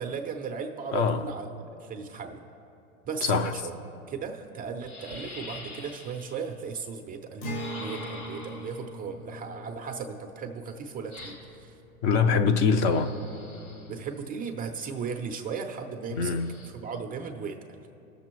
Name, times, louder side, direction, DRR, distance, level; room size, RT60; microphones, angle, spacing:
voice 1, 0.0-1.5 1.8-2.4 3.0-3.7 4.1-11.8 13.9-16.4 16.7-17.6, right 5 dB, 20° right, 4 dB, 0.5 m, -36 dB
voice 2, 0.9-1.2 3.2-3.5 12.0-13.2 16.2-16.5, left 5 dB, 40° left, 8 dB, 0.6 m, -23 dB
sound 1, 4.1-4.2 4.8-6.5 7.5-8.9 11.1-11.6 12.6-14.1 16.2-16.7, left 2 dB, 75° left, 2.7 m, -45 dB
Acoustic guitar, 7.4-12.9, equal, 55° left, 1.3 m, -41 dB
20.0 x 6.8 x 3.1 m, 2.8 s
hypercardioid pair, 105°, 44 cm